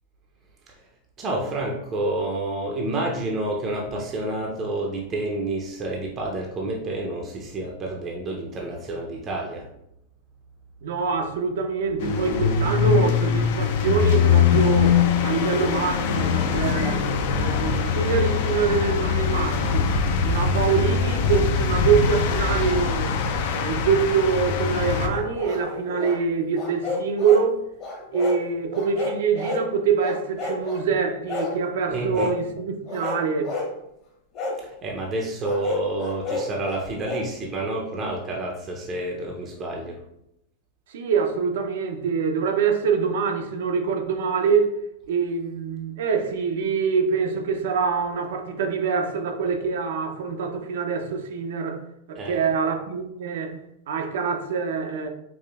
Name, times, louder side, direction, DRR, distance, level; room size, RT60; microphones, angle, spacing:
voice 1, 1.2-9.7 31.9-32.3 34.6-40.0 52.2-52.5, right 2 dB, 25° right, 0.5 m, -29 dB
voice 2, 10.8-17.0 17.3-19.9 20.2-23.1 23.5-27.6 28.1-33.5 40.9-44.7 45.1-51.8 52.1-53.6 53.9-55.1, right 6 dB, 75° right, 0.6 m, -25 dB
sound 1, 12.0-25.1, left 6 dB, 60° left, 0.4 m, -22 dB
sound 2, 25.1-26.2 26.5-27.5 27.8-28.4 28.7-29.7 30.0-30.8 31.3-31.6 32.1-32.4 32.9-33.7 34.3-34.6 35.4-37.3, left 3 dB, 35° left, 0.9 m, -31 dB
4.8 x 2.5 x 2.4 m
supercardioid pair, 145°, 0 cm